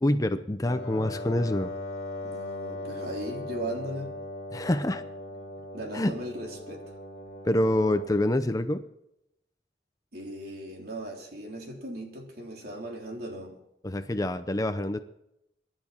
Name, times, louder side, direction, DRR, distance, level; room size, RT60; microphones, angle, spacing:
voice 1, 0.0-1.7 4.5-5.0 5.9-6.1 7.5-8.8 13.8-15.0, left 1 dB, 20° left, 10 dB, 0.6 m, -26 dB
Wind instrument woodwind instrument, 0.6-8.3, left 2 dB, 55° left, 2.9 m, -39 dB
voice 2, 2.2-4.1 5.7-6.8 10.1-13.6, right 1 dB, 55° right, 0 dB, 3.8 m, -37 dB
24.0 x 11.0 x 4.4 m, 0.82 s
head